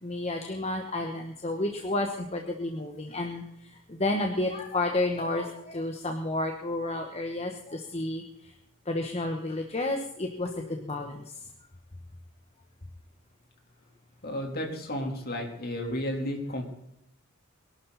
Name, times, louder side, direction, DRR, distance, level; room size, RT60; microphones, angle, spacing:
voice 1, 0.0-8.2 8.9-11.2, left 2 dB, 30° left, 4 dB, 1.3 m, -31 dB
voice 2, 14.2-16.6, left 1 dB, 50° left, 2 dB, 3.7 m, -32 dB
23.0 x 12.0 x 4.2 m, 0.78 s
head